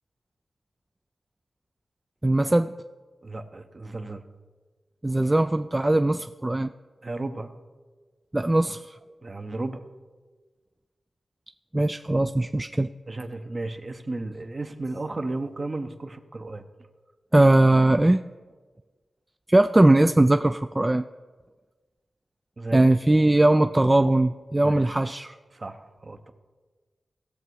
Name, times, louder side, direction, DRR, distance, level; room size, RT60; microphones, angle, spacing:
voice 1, 2.2-2.7 5.0-6.7 8.3-8.9 11.7-12.9 17.3-18.2 19.5-21.0 22.7-25.3, right 1 dB, 20° right, 9 dB, 0.3 m, -20 dB
voice 2, 3.2-4.2 7.0-7.5 9.2-9.8 13.1-16.6 22.6-22.9 24.6-25.0 25.5-26.3, right 2 dB, 40° right, 7 dB, 0.9 m, -34 dB
17.0 x 6.8 x 4.7 m, 1.4 s
cardioid pair, 60°, 0 cm